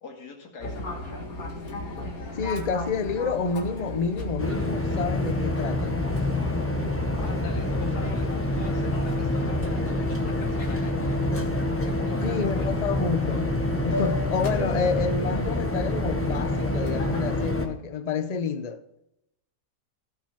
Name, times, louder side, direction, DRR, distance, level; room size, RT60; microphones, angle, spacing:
voice 1, 0.0-0.9 7.2-11.0 11.8-12.8, left 3 dB, 75° left, 2.5 m, -43 dB
Fixed-wing aircraft airplane, 0.6-17.5, left 1 dB, 60° left, 2.4 m, -36 dB
voice 2, 2.2-6.0 12.2-13.5 13.8-18.8, left 5 dB, 45° left, 0.5 m, -29 dB
sound 1, 4.4-17.7, left 1 dB, 10° left, 1.1 m, -27 dB
16.0 x 6.2 x 5.8 m
omnidirectional pair, 1.7 m